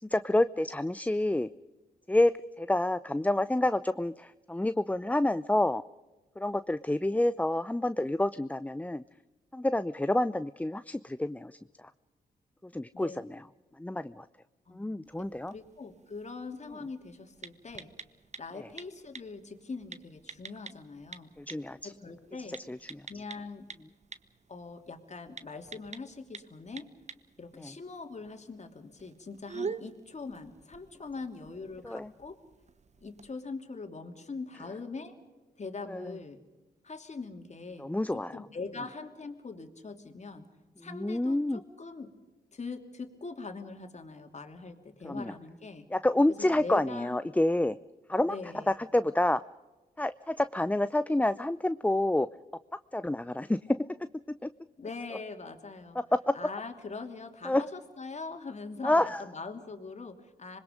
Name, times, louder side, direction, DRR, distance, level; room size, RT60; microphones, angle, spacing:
voice 1, 0.0-1.5 2.1-5.8 6.4-9.0 9.5-11.6 12.7-13.4 13.8-14.3 14.7-15.5 18.5-18.7 21.4-21.9 22.7-23.0 27.6-27.7 31.8-32.1 35.9-36.1 37.8-38.4 40.9-41.6 45.0-45.3 45.9-47.8 48.1-48.4 48.7-49.4 50.0-52.3 52.9-53.8 54.3-54.5 55.9-56.4 57.4-57.6 58.8-59.2, left 1 dB, 10° left, 14 dB, 0.6 m, -28 dB
sound 1, 15.1-33.3, right 5 dB, 40° right, 1.1 m, -48 dB
voice 2, 15.5-17.9 18.4-21.3 21.8-22.6 23.1-23.7 24.5-26.9 27.4-32.4 33.0-35.1 35.6-36.4 36.8-37.9 38.1-40.5 40.8-42.1 42.5-45.9 46.3-47.2 48.3-48.8 54.8-56.0 56.3-60.6, left 4 dB, 40° left, 5 dB, 3.0 m, -42 dB
26.5 x 21.0 x 5.2 m, 1.2 s
supercardioid pair, 50°, 18 cm